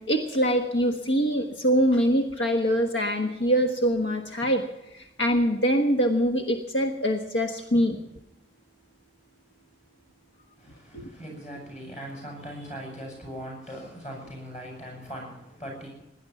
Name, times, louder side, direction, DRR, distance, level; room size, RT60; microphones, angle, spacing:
voice 1, 0.0-4.6 4.9-8.0 10.9-11.1, equal, 85° left, 4 dB, 1.4 m, -24 dB
voice 2, 10.6-15.9, equal, 35° left, 0 dB, 7.9 m, -40 dB
18.0 x 11.0 x 7.2 m, 0.90 s
head